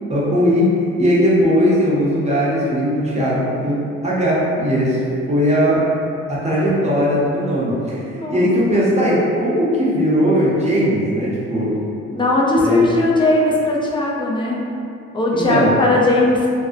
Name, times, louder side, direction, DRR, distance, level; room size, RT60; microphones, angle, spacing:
voice 1, 0.1-0.7 1.0-5.0 5.3-5.8 6.3-8.0 8.3-11.8 12.6-12.9 15.3-15.7, equal, 20° right, -7 dB, 0.7 m, -18 dB
voice 2, 8.1-8.4 8.7-8.9 12.1-14.6 15.1-16.5, left 2 dB, 15° left, -4 dB, 0.4 m, -18 dB
2.5 x 2.0 x 2.5 m, 2.6 s
cardioid pair, 90°, 30 cm